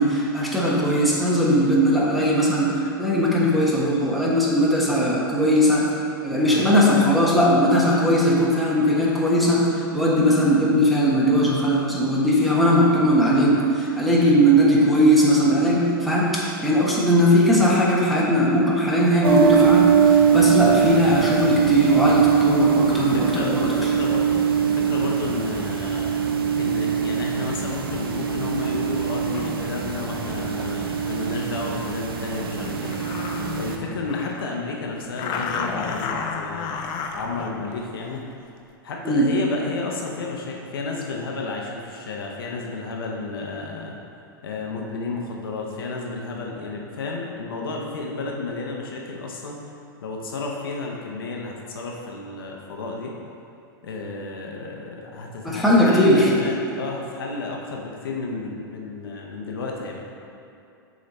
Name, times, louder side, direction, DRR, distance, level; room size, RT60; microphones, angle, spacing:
voice 1, 0.0-5.9 6.2-23.9 39.0-39.3 55.4-56.3, equal, ahead, -6 dB, 1.2 m, -19 dB
sound 1, 19.2-33.8, right 7 dB, 80° right, 0.6 m, -22 dB
voice 2, 22.9-26.2 26.6-32.9 33.4-36.7 37.1-38.2 38.8-44.0 44.4-49.6 50.0-53.1 53.8-60.0, left 3 dB, 75° left, -1 dB, 0.9 m, -32 dB
sound 2, 26.5-26.9 27.5-31.7 32.2-32.3 32.6-34.6 35.2-38.3, left 5 dB, 40° left, 0.6 m, -34 dB
6.6 x 3.8 x 4.2 m, 2.6 s
hypercardioid pair, 105°, 12 cm